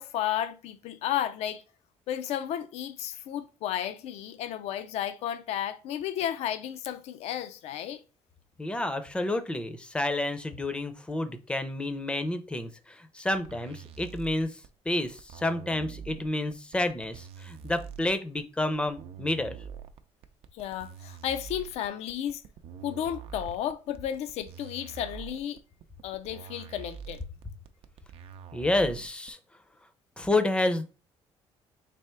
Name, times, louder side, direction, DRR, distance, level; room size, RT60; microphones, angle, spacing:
voice 1, 0.0-1.6 2.1-8.0 20.5-22.4 22.8-25.6 26.0-27.2, left 10 dB, 80° left, 0.4 m, -33 dB
voice 2, 8.6-14.5 14.9-19.6 28.5-29.4 30.2-30.8, left 2 dB, 10° left, 0.5 m, -29 dB
sound 1, 13.3-29.3, right 7 dB, 60° right, 0.4 m, -45 dB
3.4 x 3.3 x 4.3 m
cardioid pair, 150°, 11 cm